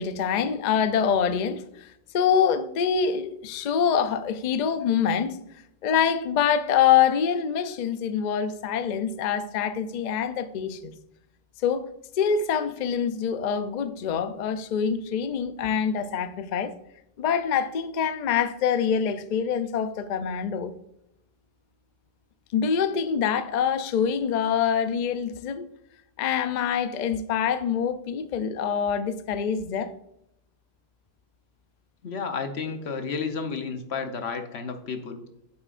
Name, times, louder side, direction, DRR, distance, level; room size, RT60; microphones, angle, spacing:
voice 1, 0.0-1.9 2.1-5.4 5.8-10.9 11.6-11.9 12.2-16.7 17.2-20.7 22.5-25.7 26.2-29.9, left 7 dB, 55° left, 0.6 m, -25 dB
voice 2, 32.0-35.2, left 5 dB, 85° left, 1.2 m, -32 dB
8.8 x 7.1 x 2.5 m
omnidirectional pair, 1.1 m